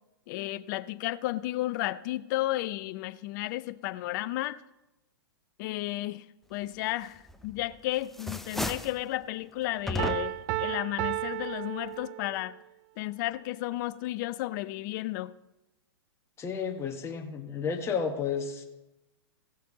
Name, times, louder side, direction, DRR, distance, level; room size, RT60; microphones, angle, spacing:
voice 1, 0.3-4.6 5.6-6.2 6.5-12.6 13.0-15.3, left 16 dB, 50° left, 0.6 m, -33 dB
sound 1, 7.3-7.7 8.0-9.0 9.9-10.5, left 1 dB, ahead, 0.5 m, -34 dB
Piano, 10.0-12.6, right 16 dB, 45° right, 0.4 m, -33 dB
voice 2, 16.4-18.6, left 6 dB, 20° left, 1.3 m, -32 dB
15.5 x 6.5 x 3.9 m
hypercardioid pair, 120°, 13 cm